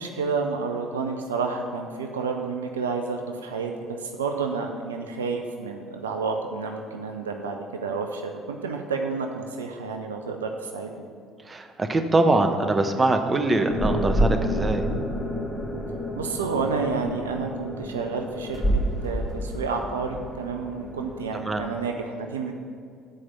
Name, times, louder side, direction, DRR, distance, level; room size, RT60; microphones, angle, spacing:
voice 1, 0.0-11.1 16.2-22.5, right 4 dB, 85° right, 4 dB, 0.5 m, -30 dB
voice 2, 11.4-14.8 21.3-21.6, right 2 dB, 25° right, 6 dB, 0.9 m, -23 dB
sound 1, 13.7-21.7, equal, 10° left, 2.3 m, -29 dB
7.7 x 4.9 x 7.0 m, 2.3 s
figure-of-eight pair, 55°, 0 cm